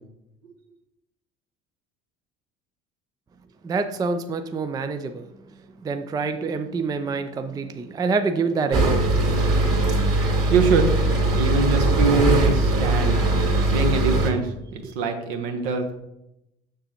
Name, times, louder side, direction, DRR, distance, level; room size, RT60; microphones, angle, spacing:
voice 1, 3.6-5.3 5.8-9.1 14.8-14.9, right 4 dB, 10° right, 8 dB, 0.4 m, -26 dB
sound 1, 8.7-14.3, right 2 dB, 40° right, 2.2 m, -20 dB
voice 2, 10.5-10.9 11.3-13.2 13.7-15.9, right 4 dB, 65° right, 4 dB, 1.2 m, -24 dB
6.8 x 6.5 x 3.0 m, 0.88 s
figure-of-eight pair, 65°, 33 cm